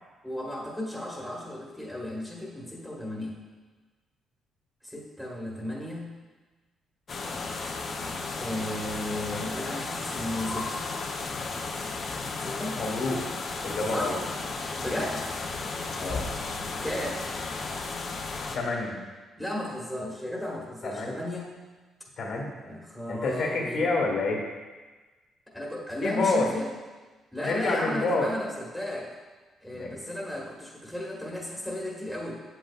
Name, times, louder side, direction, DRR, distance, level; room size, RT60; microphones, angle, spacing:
voice 1, 0.2-3.4 4.8-6.1 8.4-10.8 12.4-12.8 13.9-14.2 14.8-15.3 16.8-17.2 19.3-21.5 22.6-23.8 25.5-26.7 27.3-29.1 29.6-32.3, left 1 dB, ahead, -4 dB, 1.4 m, -34 dB
sound 1, 7.1-18.6, left 3 dB, 50° left, 0.8 m, -34 dB
voice 2, 12.8-13.2 13.6-14.2 15.9-16.3 17.6-17.7 18.5-19.0 20.8-21.1 22.2-22.5 23.1-24.4 26.0-26.5 27.4-28.3 29.7-30.0, left 3 dB, 70° left, -1 dB, 1.7 m, -28 dB
7.9 x 7.3 x 2.4 m, 1.3 s
cardioid pair, 90°, 0 cm